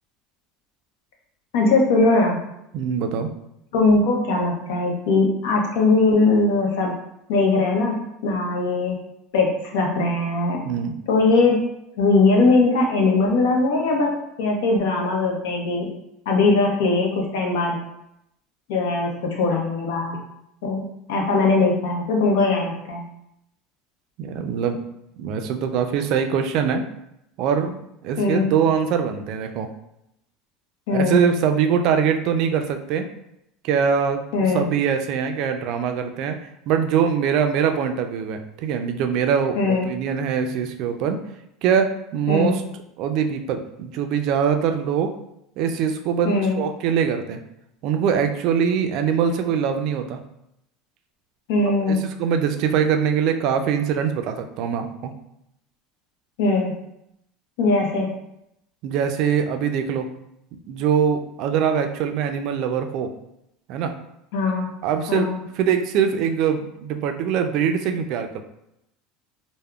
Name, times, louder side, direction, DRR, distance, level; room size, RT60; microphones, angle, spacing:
voice 1, 1.5-2.4 3.7-6.9 7.3-9.0 9.3-10.6 11.1-11.6 12.0-15.9 16.3-17.8 18.7-20.2 20.6-23.0 28.2-28.5 30.9-31.2 34.3-34.6 39.6-39.9 42.3-42.5 46.2-46.6 51.5-52.0 56.4-56.8 57.6-58.1 64.3-64.7 65.1-65.4, left 3 dB, 85° left, 0 dB, 0.7 m, -20 dB
voice 2, 2.7-3.3 10.6-10.9 24.2-24.8 25.2-26.9 27.4-29.7 30.9-33.1 33.6-34.2 34.5-36.4 36.7-41.2 41.6-42.6 43.0-45.1 45.6-47.4 47.8-50.2 51.6-55.1 58.8-60.1 60.5-63.1 63.7-63.9 64.8-65.3 65.6-68.4, right 7 dB, 60° right, 6 dB, 0.3 m, -23 dB
3.4 x 2.0 x 2.3 m, 0.81 s
supercardioid pair, 125°, 0 cm